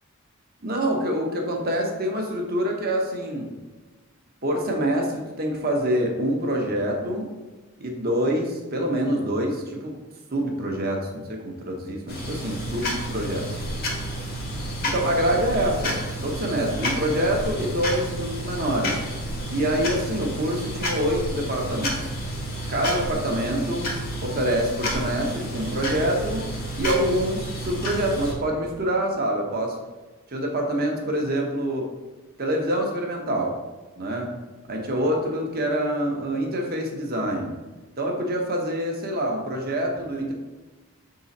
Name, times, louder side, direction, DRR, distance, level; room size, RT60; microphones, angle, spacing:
voice 1, 0.6-3.6 4.4-7.3 7.8-10.0 10.3-13.6 14.8-19.0 19.5-22.0 22.7-29.8 30.3-31.9 32.4-33.6 34.0-34.4 34.7-37.6 38.0-40.3, right 1 dB, 45° right, 1 dB, 1.1 m, -26 dB
sound 1, 12.1-28.3, equal, 45° left, 1.2 m, -30 dB
6.2 x 3.9 x 4.2 m, 1.2 s
head